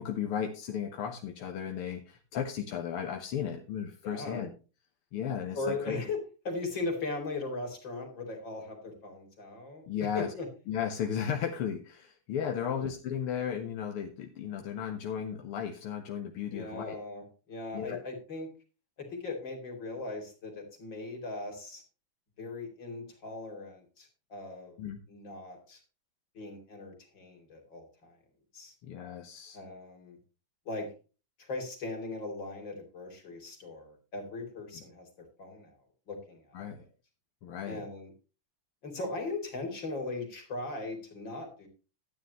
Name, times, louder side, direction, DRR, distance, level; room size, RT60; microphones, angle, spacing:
voice 1, 0.0-4.5 5.1-6.0 9.9-10.3 10.7-17.0 17.7-18.0 24.8-25.0 28.8-29.6 36.5-36.8 37.4-37.9, left 8 dB, 85° left, 3 dB, 2.0 m, -35 dB
voice 2, 4.0-4.5 5.5-9.9 10.1-10.5 12.6-12.9 16.5-18.5 19.0-21.8 22.4-24.8 25.1-25.8 26.3-28.2 28.5-28.7 29.5-30.2 30.7-30.9 31.4-35.1 35.4-35.8 36.1-36.6 37.7-38.1 38.8-41.7, left 3 dB, 60° left, 2 dB, 3.7 m, -39 dB
13.0 x 9.5 x 3.0 m, 0.33 s
omnidirectional pair, 2.4 m